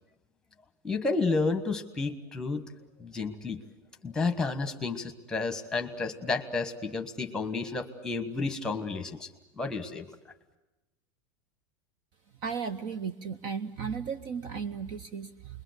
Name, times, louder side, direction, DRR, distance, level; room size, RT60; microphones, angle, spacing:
voice 1, 0.8-2.6 3.0-3.6 4.0-9.3 9.6-10.0, left 3 dB, 5° left, 7 dB, 1.5 m, -31 dB
voice 2, 12.4-15.6, right 6 dB, 35° right, 15 dB, 0.9 m, -35 dB
29.0 x 22.0 x 8.1 m, 1.0 s
supercardioid pair, 170°, 13 cm